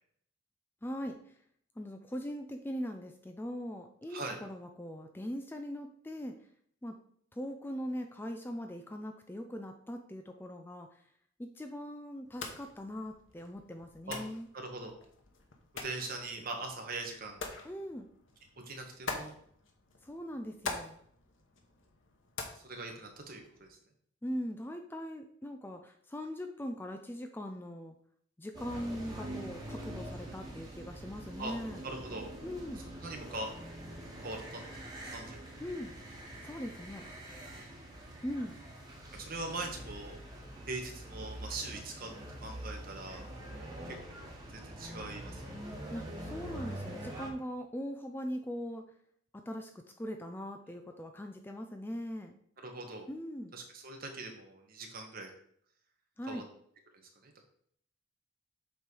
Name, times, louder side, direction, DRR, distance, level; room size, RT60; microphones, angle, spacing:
voice 1, 0.8-1.2 1.8-6.3 6.8-7.0 7.3-10.9 11.4-14.5 17.6-18.1 20.0-21.0 24.2-27.9 28.4-31.8 32.4-32.8 35.6-35.9 36.4-37.0 38.2-38.6 45.9-48.8 49.3-52.4 53.1-53.5 56.2-56.4, equal, 10° left, 5 dB, 0.4 m, -40 dB
sound 1, 12.2-23.7, left 3 dB, 65° left, 1.1 m, -46 dB
voice 2, 14.5-15.0 15.7-17.4 18.6-19.3 22.5-23.8 30.5-30.7 31.4-31.5 31.8-32.3 32.7-33.5 34.2-35.4 37.5-37.7 39.1-40.1 40.7-42.1 42.4-43.3 43.9-45.7 52.6-53.1 53.5-55.3 56.2-56.4 57.2-57.4, right 2 dB, 45° right, 3 dB, 1.3 m, -42 dB
sound 2, 28.5-47.3, right 1 dB, 20° right, 1.4 m, -45 dB
7.3 x 3.2 x 5.3 m, 0.64 s
head